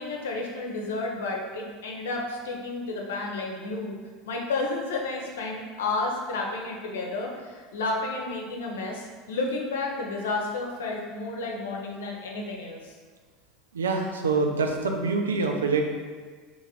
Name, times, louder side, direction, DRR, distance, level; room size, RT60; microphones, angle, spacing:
voice 1, 0.0-4.0 4.2-12.9, left 3 dB, 75° left, 0 dB, 0.6 m, -31 dB
voice 2, 13.7-15.8, right 4 dB, 85° right, 3 dB, 0.4 m, -25 dB
2.9 x 2.5 x 4.1 m, 1.5 s
hypercardioid pair, 75°, 0 cm